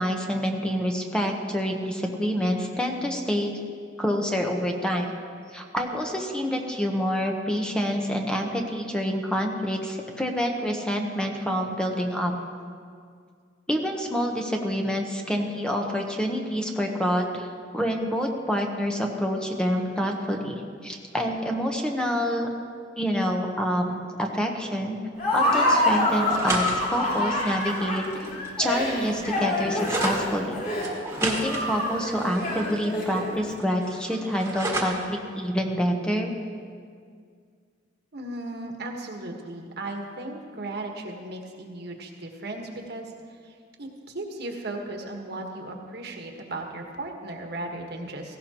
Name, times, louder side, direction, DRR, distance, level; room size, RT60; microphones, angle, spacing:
voice 1, 0.0-3.6 4.0-5.1 5.5-12.3 13.7-17.5 17.7-22.5 23.0-25.0 25.3-28.2 28.6-30.6 31.2-36.3, equal, 5° left, 1 dB, 0.9 m, -27 dB
Laughter, 25.2-33.5, left 1 dB, 50° left, 3.8 m, -26 dB
sound 1, 26.2-30.2 30.8-33.2 33.5-35.1, right 2 dB, 15° right, 1.6 m, -34 dB
voice 2, 38.1-43.1 43.4-48.4, right 2 dB, 60° right, 2 dB, 1.5 m, -36 dB
17.0 x 16.0 x 3.0 m, 2.1 s
head